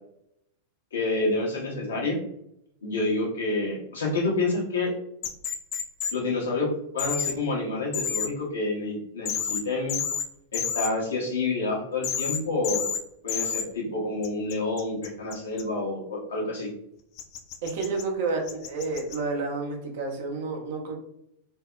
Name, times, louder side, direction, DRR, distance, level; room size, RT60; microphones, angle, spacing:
voice 1, 0.9-2.2 2.8-4.9 6.1-10.0 10.5-12.8 13.2-16.7, left 2 dB, 75° left, -2 dB, 0.8 m, -28 dB
sound 1, 5.2-6.1 7.0-7.3 7.9-8.3 9.3-9.6 9.9-10.2 10.5-10.9 12.0-12.4 12.6-13.0 13.3-13.6 14.2-15.6 17.2-18.0 18.5-19.2, left 7 dB, 45° left, 0.4 m, -29 dB
voice 2, 17.6-21.0, right 3 dB, 60° right, 1 dB, 0.7 m, -30 dB
2.6 x 2.0 x 2.4 m, 0.76 s
figure-of-eight pair, 95°, 0 cm